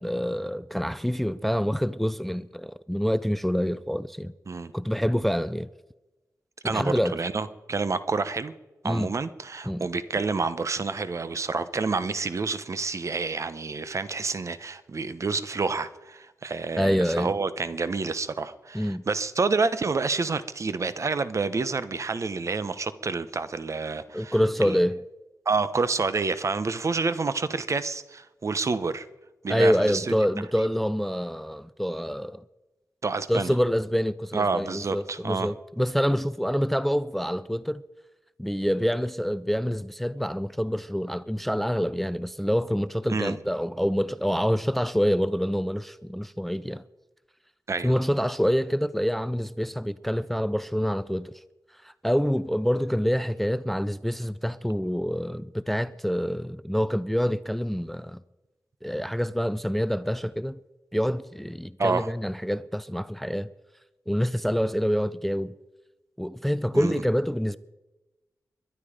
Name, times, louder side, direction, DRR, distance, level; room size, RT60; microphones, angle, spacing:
voice 1, 0.0-4.3 4.7-5.7 6.6-7.2 8.8-9.1 9.7-9.9 16.8-17.3 18.7-19.1 24.1-25.0 29.5-32.4 33.3-37.8 38.4-46.8 47.8-51.3 51.8-58.2 58.8-60.6 60.9-63.5 64.1-65.6 66.2-67.6, equal, 5° left, 0.4 m, -26 dB
voice 2, 6.6-8.5 8.8-24.3 24.6-24.8 25.5-29.1 29.4-30.1 33.0-33.5 34.3-35.5 43.1-43.4 47.7-47.9 61.8-62.1 66.7-67.0, right 4 dB, 50° right, 1.0 m, -28 dB
22.0 x 11.0 x 5.1 m
wide cardioid pair, 85°, 7 cm